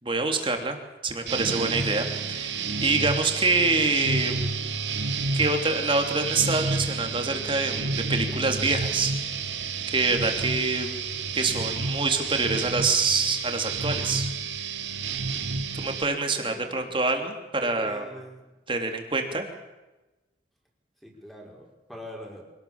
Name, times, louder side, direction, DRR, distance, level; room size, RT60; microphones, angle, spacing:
voice 1, 0.0-4.6 5.3-9.1 9.9-10.9 11.3-14.3 15.7-18.0 18.7-19.5, right 3 dB, 30° right, 4 dB, 3.2 m, -26 dB
sound 1, 1.3-16.1, right 4 dB, 85° right, 2.5 m, -30 dB
voice 2, 11.3-11.8 16.3-16.9 17.6-18.5 21.0-22.4, equal, ahead, -1 dB, 5.4 m, -44 dB
26.0 x 18.5 x 7.3 m, 1.1 s
head